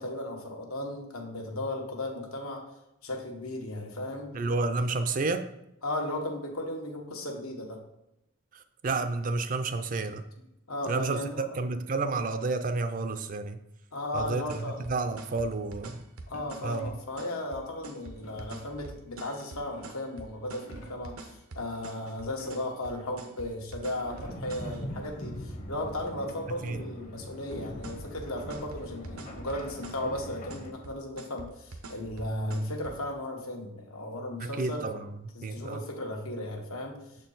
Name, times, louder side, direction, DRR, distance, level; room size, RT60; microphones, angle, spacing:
voice 1, 0.0-2.6 3.0-4.3 4.7-4.8 5.8-7.8 10.7-11.5 13.9-14.8 16.3-34.9 35.3-37.0, left 1 dB, 85° left, 1 dB, 1.3 m, -36 dB
voice 2, 4.3-5.5 8.5-10.2 10.9-13.6 14.1-16.0 16.6-16.9 24.4-24.5 26.6-26.8 34.4-35.8, right 3 dB, 40° right, 10 dB, 0.4 m, -31 dB
sound 1, 14.2-24.8 27.5-33.0, right 2 dB, 90° right, 0.8 m, -45 dB
sound 2, 16.3-17.2 18.2-18.7 19.3-20.1 20.5-21.1 22.2-22.9 23.5-23.6 23.8-24.6 26.0-27.1, right 2 dB, 60° left, 1.2 m, -52 dB
sound 3, 24.1-30.7, left 1 dB, 35° left, 0.7 m, -42 dB
6.6 x 4.4 x 4.0 m, 0.87 s
head